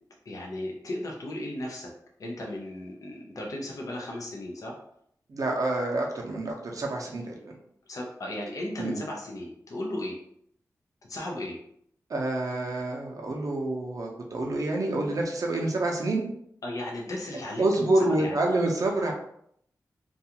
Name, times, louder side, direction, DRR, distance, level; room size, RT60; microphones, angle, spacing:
voice 1, 0.3-1.9 2.2-4.7 7.9-10.2 11.0-11.6 16.6-17.9 18.2-18.4, left 1 dB, 60° left, -2 dB, 0.5 m, -35 dB
voice 2, 5.3-7.6 8.8-9.0 12.1-16.3 17.6-19.1, right 2 dB, 60° right, 0 dB, 0.5 m, -27 dB
2.4 x 2.3 x 2.8 m, 0.70 s
wide cardioid pair, 105°, 7 cm